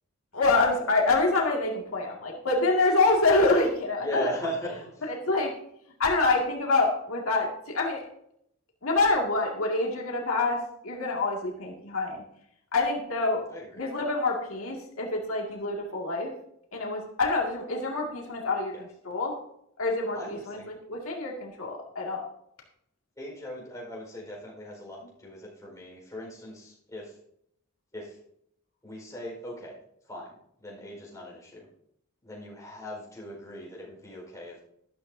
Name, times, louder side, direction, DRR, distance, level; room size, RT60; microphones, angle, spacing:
voice 1, 0.3-4.3 5.0-5.5 6.0-8.0 8.8-10.6 10.8-12.2 12.7-13.4 13.8-16.3 16.7-19.3 19.8-22.2, left 3 dB, 85° left, -1 dB, 2.2 m, -26 dB
voice 2, 4.0-4.9 13.5-13.8 18.7-18.8 20.1-20.7 23.2-27.1 27.9-28.1 28.8-29.7 30.1-30.3 30.6-31.7 32.2-34.5, equal, 15° left, -3 dB, 4.7 m, -39 dB
12.5 x 12.0 x 2.7 m, 0.73 s
head